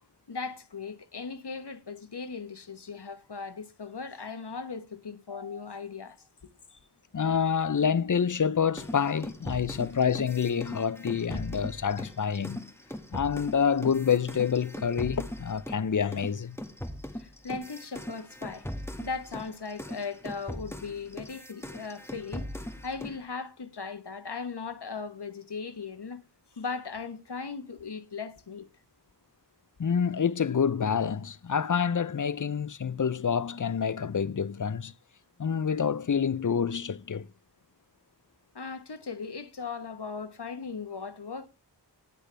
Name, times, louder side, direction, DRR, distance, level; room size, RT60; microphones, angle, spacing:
voice 1, 0.3-6.3 6.7-6.8 17.1-18.7 19.0-26.2 26.5-28.7 38.5-41.5, left 5 dB, 65° left, 1.3 m, -38 dB
voice 2, 7.1-12.7 13.1-16.6 29.8-34.9 35.4-37.3, left 7 dB, 45° left, 0.6 m, -27 dB
sound 1, 8.8-15.8 16.1-23.2, equal, 5° left, 1.8 m, -40 dB
18.5 x 6.7 x 3.4 m
wide cardioid pair, 55°, 43 cm